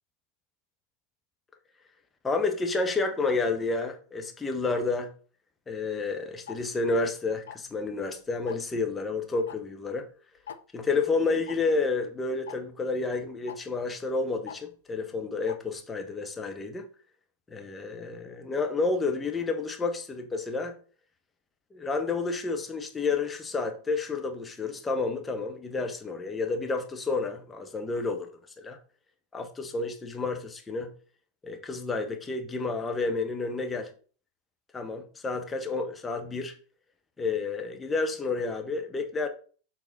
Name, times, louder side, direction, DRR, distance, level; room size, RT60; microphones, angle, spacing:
voice 1, 2.2-5.1 5.7-10.1 10.7-16.8 17.5-20.7 21.7-28.3 28.6-28.8 29.3-30.9 31.4-33.9 34.7-36.5 37.2-39.3, left 3 dB, 15° left, 1.1 m, -30 dB
Tick-tock, 6.5-6.6 7.5-7.8 8.5-8.7 9.5-9.6 9.9-10.0 10.5-10.6 11.5-11.6 12.5-12.6 13.5-13.6 14.5-14.6 15.5-15.6, left 8 dB, 65° left, 0.5 m, -41 dB
6.9 x 4.0 x 4.0 m
figure-of-eight pair, 90°, 0 cm